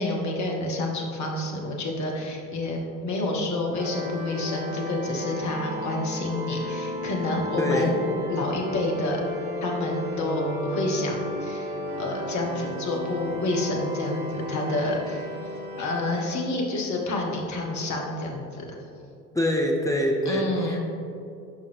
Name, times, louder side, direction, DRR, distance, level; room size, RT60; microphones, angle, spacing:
voice 1, 0.0-9.2 9.6-18.8 20.2-20.8, left 2 dB, 40° left, 0 dB, 1.2 m, -29 dB
sound 1, 3.7-16.3, left 1 dB, 50° right, 1.3 m, -33 dB
voice 2, 7.6-7.9 19.3-20.8, left 1 dB, 5° left, 0 dB, 0.5 m, -25 dB
6.7 x 5.3 x 3.4 m, 2.7 s
figure-of-eight pair, 60°, 46 cm